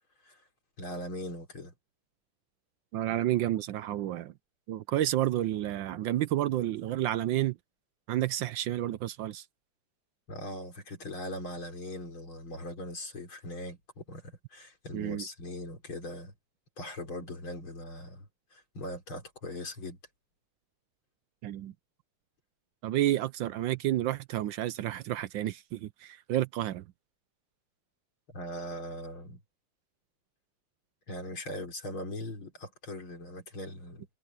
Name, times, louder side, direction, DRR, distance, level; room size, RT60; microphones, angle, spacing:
voice 1, 0.8-1.7 10.3-16.3 16.8-20.0 28.3-29.4 31.1-34.1, left 1 dB, 75° left, 6.2 m, -40 dB
voice 2, 2.9-4.3 4.7-7.6 8.1-9.4 14.9-15.3 21.4-21.7 22.8-26.9, right 13 dB, 75° right, 1.2 m, -30 dB
omnidirectional pair, 2.3 m